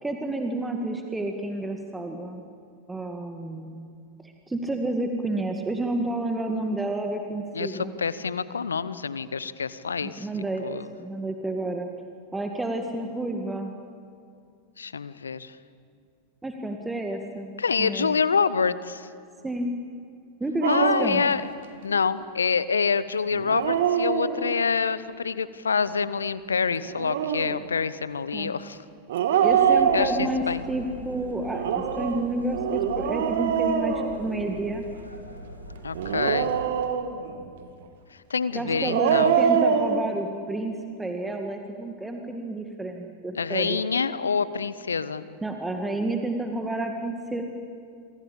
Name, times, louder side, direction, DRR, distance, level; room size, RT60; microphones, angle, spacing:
voice 1, 0.0-2.4 2.9-3.9 4.2-7.9 10.0-10.7 11.0-11.9 12.3-13.7 16.4-17.5 17.8-18.1 19.4-19.7 20.4-21.2 28.3-28.5 29.4-34.8 38.5-43.8 45.4-47.4, right 2 dB, 10° right, 4 dB, 2.0 m, -30 dB
voice 2, 7.5-10.3 10.6-10.9 14.8-15.6 17.6-19.1 20.6-21.5 21.8-28.8 29.3-29.4 29.9-30.6 35.8-36.5 38.1-39.4 43.3-45.2, left 5 dB, 75° left, 17 dB, 1.0 m, -26 dB
Dog, 20.6-21.3 23.3-24.7 26.8-27.6 29.1-30.6 31.5-34.7 35.9-37.3 38.7-40.0, right 7 dB, 55° right, 2.1 m, -24 dB
sound 1, 29.4-36.6, right 1 dB, 85° right, 3.1 m, -43 dB
28.0 x 24.5 x 8.6 m, 2.4 s
figure-of-eight pair, 90°, 0 cm